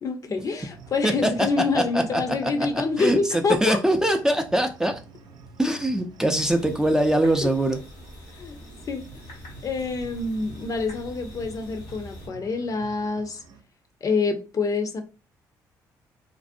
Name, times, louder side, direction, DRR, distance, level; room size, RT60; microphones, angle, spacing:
voice 1, 0.0-3.8 7.4-7.5 8.4-8.6 8.9-9.0 9.6-13.4 14.0-15.0, left 4 dB, 45° left, 0.5 m, -26 dB
sound 1, 0.6-13.6, right 4 dB, 65° right, 0.5 m, -48 dB
voice 2, 1.7-3.2 3.6-5.0 5.6-7.8, right 1 dB, 5° right, 0.4 m, -23 dB
sound 2, 6.3-12.3, left 1 dB, 85° left, 0.7 m, -44 dB
2.5 x 2.0 x 2.5 m
supercardioid pair, 65°, 8 cm